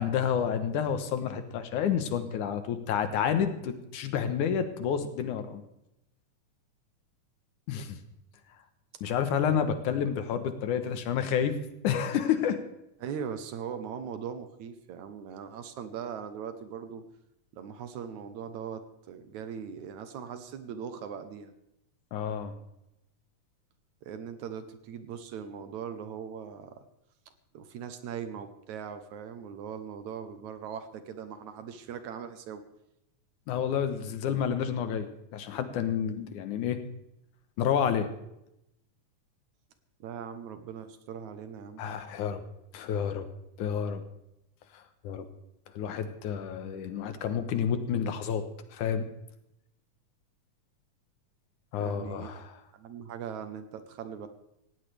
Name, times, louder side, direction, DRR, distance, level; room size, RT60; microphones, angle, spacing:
voice 1, 0.0-5.6 7.7-8.0 9.0-11.6 11.8-12.6 22.1-22.5 33.5-36.8 37.6-38.1 41.8-42.4 42.7-43.3 43.6-44.0 44.7-45.3 45.7-48.4 48.7-49.0 51.7-52.5, left 8 dB, 70° left, 9 dB, 2.5 m, -29 dB
voice 2, 13.0-17.0 17.5-21.5 24.0-26.8 27.5-32.6 40.0-41.8 51.8-52.4 52.7-54.3, right 7 dB, 70° right, 9 dB, 2.2 m, -40 dB
18.0 x 16.0 x 3.4 m, 0.84 s
omnidirectional pair, 3.8 m